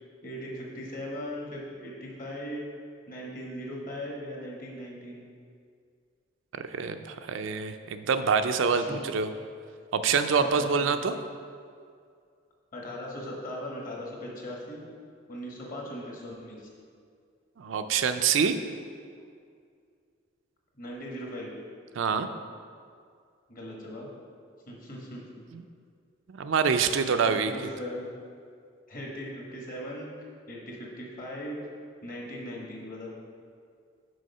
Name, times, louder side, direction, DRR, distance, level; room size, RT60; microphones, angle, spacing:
voice 1, 0.2-2.6 3.1-5.2 8.7-9.0 10.3-10.8 12.7-14.8 15.3-16.7 20.8-21.5 23.5-24.1 24.7-25.2 27.1-28.1 28.9-30.1 30.5-31.6 32.0-33.1, equal, 45° left, -2 dB, 1.3 m, -39 dB
voice 2, 6.5-9.3 9.9-11.1 17.6-18.5 22.0-22.3 25.5-25.6 26.3-27.5, right 6 dB, 75° right, 8 dB, 0.4 m, -26 dB
6.3 x 4.8 x 5.4 m, 2.2 s
head